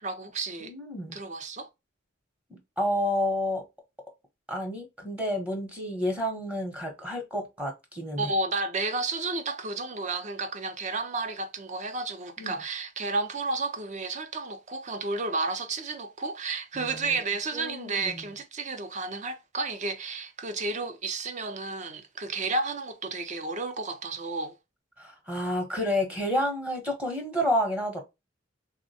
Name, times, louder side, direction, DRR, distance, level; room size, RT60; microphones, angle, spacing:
voice 1, 0.0-0.7 1.1-1.7 8.2-24.5, right 3 dB, 35° right, 0.5 m, -32 dB
voice 2, 0.6-1.2 2.5-3.6 4.5-8.3 12.4-12.5 16.7-17.2 17.5-18.3 25.0-28.0, left 1 dB, 5° right, 0.8 m, -30 dB
3.4 x 2.1 x 2.6 m
head